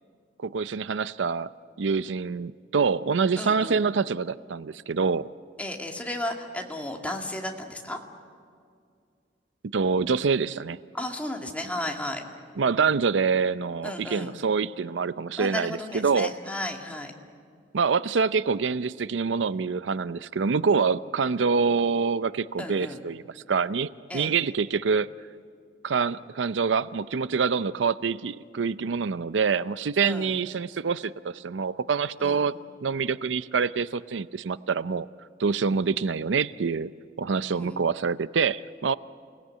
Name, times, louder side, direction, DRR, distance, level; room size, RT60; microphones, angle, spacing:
voice 1, 0.4-1.5 1.8-5.3 9.6-10.8 12.6-16.3 17.7-23.2 23.5-25.1 25.8-32.5 32.8-35.1 35.4-36.9 37.2-38.9, right 5 dB, 80° right, 16 dB, 0.5 m, -26 dB
voice 2, 3.4-3.8 5.6-8.0 10.9-12.2 13.8-14.3 15.4-17.1 22.6-23.0 24.1-24.3 30.0-30.3 32.2-32.6 37.5-37.8, left 1 dB, 10° left, 2 dB, 2.2 m, -34 dB
29.0 x 18.5 x 9.3 m, 2.3 s
head